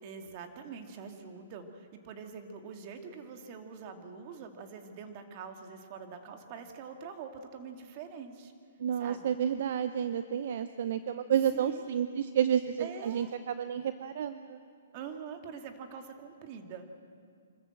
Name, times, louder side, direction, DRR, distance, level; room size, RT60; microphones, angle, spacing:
voice 1, 0.0-8.5 9.0-9.3 11.5-11.8 12.8-13.3 14.9-16.9, right 6 dB, 35° right, 5 dB, 2.2 m, -44 dB
voice 2, 8.8-14.6, right 9 dB, 55° right, 11 dB, 0.7 m, -30 dB
25.5 x 13.5 x 7.8 m, 2.3 s
hypercardioid pair, 150°, 0 cm